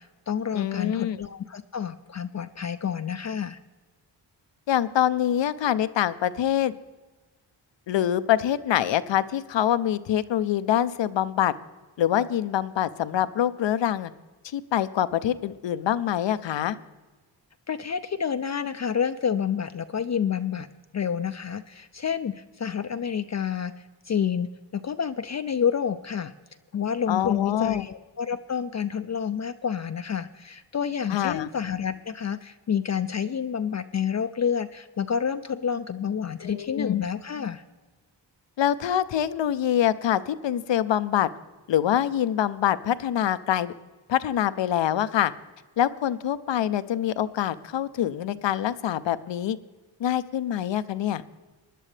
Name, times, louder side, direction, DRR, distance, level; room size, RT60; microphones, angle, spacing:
voice 1, 0.0-3.6 17.7-20.7 20.9-26.3 26.7-37.6, left 7 dB, 40° left, 9 dB, 0.5 m, -29 dB
voice 2, 0.5-1.2 4.7-6.7 7.9-11.5 12.0-14.1 14.4-16.8 27.1-27.8 31.1-31.5 36.4-37.0 38.6-41.3 41.7-43.7 44.1-45.3 45.8-49.6 50.0-51.2, left 11 dB, 75° left, 14 dB, 0.7 m, -25 dB
19.5 x 11.0 x 3.3 m, 1.3 s
cardioid pair, 75°, 44 cm